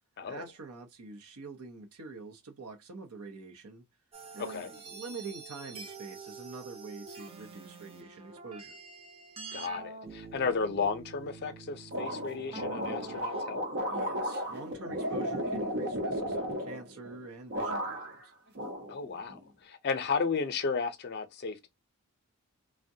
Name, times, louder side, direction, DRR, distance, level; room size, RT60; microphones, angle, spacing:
voice 1, 0.3-3.8 4.3-8.8 13.9-18.3, right 3 dB, 85° right, 0.7 m, -45 dB
sound 1, 4.1-13.4, right 4 dB, 25° right, 0.6 m, -47 dB
voice 2, 4.4-4.7 9.5-13.6 18.9-21.7, left 5 dB, 50° left, 0.5 m, -33 dB
sound 2, 11.9-17.2 17.5-18.2 18.6-19.4, equal, 50° right, 0.9 m, -34 dB
3.4 x 2.1 x 2.7 m
head